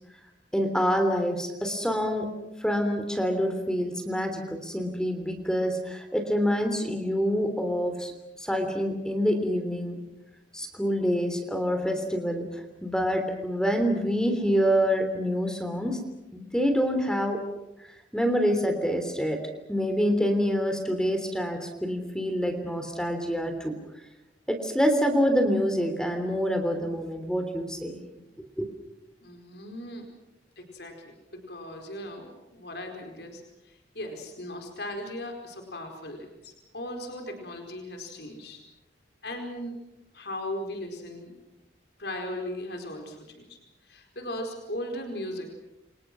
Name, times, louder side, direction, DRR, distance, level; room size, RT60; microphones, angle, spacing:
voice 1, 0.5-2.3 2.6-8.1 8.4-10.0 10.5-16.0 16.3-17.4 18.1-19.4 19.7-23.7 24.5-28.0 28.6-28.7, equal, 5° left, 6 dB, 3.2 m, -26 dB
voice 2, 29.2-30.1 30.6-38.6 39.2-39.8 40.1-41.4 42.0-43.6 43.8-45.5, left 1 dB, 65° left, 3 dB, 4.8 m, -38 dB
30.0 x 26.0 x 6.2 m, 0.93 s
head